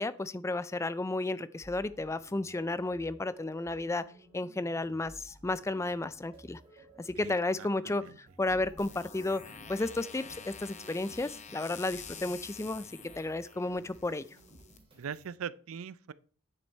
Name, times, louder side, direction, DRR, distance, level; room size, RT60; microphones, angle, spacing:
voice 1, 0.0-4.0 4.3-6.6 7.0-12.9 13.2-14.3, left 2 dB, 15° left, 0.3 m, -33 dB
sound 1, 1.6-15.3, right 1 dB, 25° right, 3.2 m, -56 dB
voice 2, 7.2-8.1 15.0-16.1, right 7 dB, 75° right, 0.4 m, -41 dB
sound 2, 8.8-14.8, left 7 dB, 35° left, 0.8 m, -48 dB
9.3 x 6.1 x 4.4 m
head